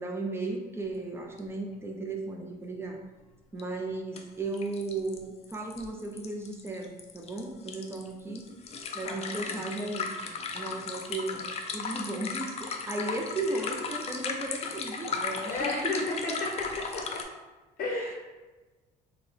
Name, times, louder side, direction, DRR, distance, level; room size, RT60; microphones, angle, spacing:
voice 1, 0.0-3.0 3.5-8.4 8.9-11.4 11.7-16.1 17.9-18.1, right 2 dB, 15° right, 2 dB, 0.6 m, -35 dB
sound 1, 1.4-1.5 1.7-1.8 3.6-3.7 4.2-4.3 4.5-17.2, left 5 dB, 40° left, 0.4 m, -36 dB
voice 2, 9.0-9.7 11.3-11.4 13.4-13.9 15.4-16.5 16.8-17.2 17.8-18.1, left 2 dB, 60° left, -2 dB, 0.7 m, -34 dB
3.7 x 2.3 x 3.4 m, 1.2 s
cardioid pair, 110°, 17 cm